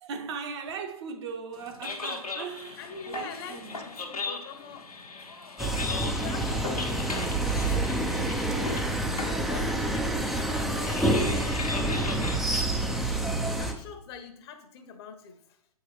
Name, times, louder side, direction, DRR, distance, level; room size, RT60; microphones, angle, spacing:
voice 1, 0.0-3.8 6.5-6.7 7.0-7.2, right 5 dB, 45° right, 0.7 m, -38 dB
sound 1, 1.5-13.8, left 4 dB, 80° left, 1.1 m, -38 dB
voice 2, 2.8-4.9 6.1-7.3 8.4-8.9 9.4-11.0 12.7-15.6, left 6 dB, 45° left, 0.9 m, -44 dB
sound 2, 5.6-13.7, right 1 dB, ahead, 0.3 m, -28 dB
8.0 x 4.6 x 3.2 m
figure-of-eight pair, 110°, 19 cm